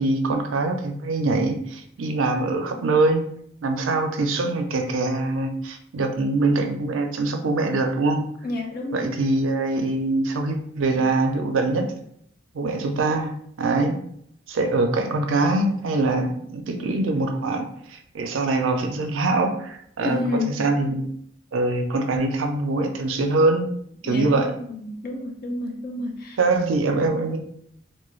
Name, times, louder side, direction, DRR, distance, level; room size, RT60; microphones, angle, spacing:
voice 1, 0.0-3.2 3.6-8.2 8.9-11.9 12.5-13.3 13.6-14.0 14.5-20.2 20.5-21.1 21.5-23.7 24.0-24.6 26.4-27.4, right 2 dB, 80° right, 5 dB, 0.4 m, -23 dB
voice 2, 8.4-9.1 10.9-11.0 20.0-20.6 24.1-26.4, left 2 dB, 45° left, 2 dB, 0.4 m, -30 dB
2.3 x 2.1 x 3.1 m, 0.69 s
head